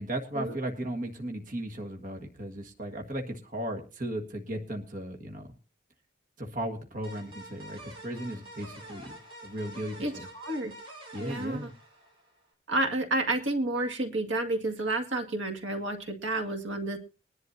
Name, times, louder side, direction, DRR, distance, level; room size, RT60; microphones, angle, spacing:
voice 1, 0.0-5.5 6.4-9.0 9.4-10.3 11.1-11.7, right 1 dB, 45° right, 3 dB, 1.8 m, -36 dB
sound 1, 7.0-12.5, right 1 dB, 25° right, 7.9 m, -47 dB
voice 2, 10.0-10.7 11.2-11.7 12.7-17.0, right 2 dB, 75° right, 6 dB, 2.2 m, -30 dB
22.0 x 11.0 x 2.8 m, 0.35 s
head